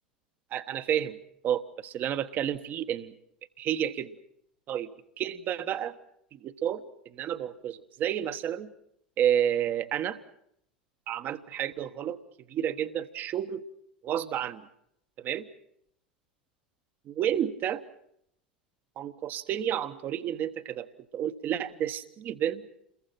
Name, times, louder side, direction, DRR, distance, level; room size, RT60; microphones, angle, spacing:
voice 1, 0.5-1.2 1.4-3.1 3.6-4.1 4.7-4.9 5.2-5.9 6.3-8.7 9.2-10.2 11.1-12.2 12.5-13.6 14.0-14.7 15.2-15.5 17.1-17.8 19.0-20.9 21.1-22.6, right 10 dB, 40° right, 10 dB, 1.3 m, -30 dB
28.5 x 22.0 x 5.9 m, 0.74 s
figure-of-eight pair, 80°, 5 cm